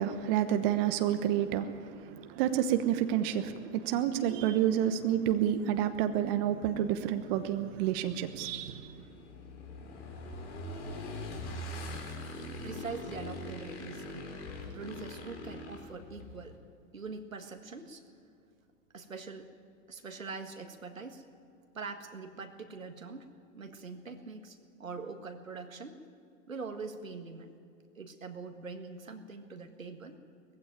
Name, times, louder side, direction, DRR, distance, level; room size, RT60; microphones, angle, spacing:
voice 1, 0.0-8.9, right 10 dB, 45° right, 9 dB, 1.2 m, -29 dB
Motorcycle / Engine, 6.9-16.5, left 1 dB, 60° left, 3.9 m, -43 dB
voice 2, 12.6-14.3 14.7-16.6 16.9-18.0 18.9-19.5 19.9-21.2 21.7-23.3 23.5-26.0 26.5-27.5 28.0-30.2, right 4 dB, 90° right, 6 dB, 1.8 m, -43 dB
19.5 x 15.5 x 8.9 m, 2.3 s
figure-of-eight pair, 100°, 39 cm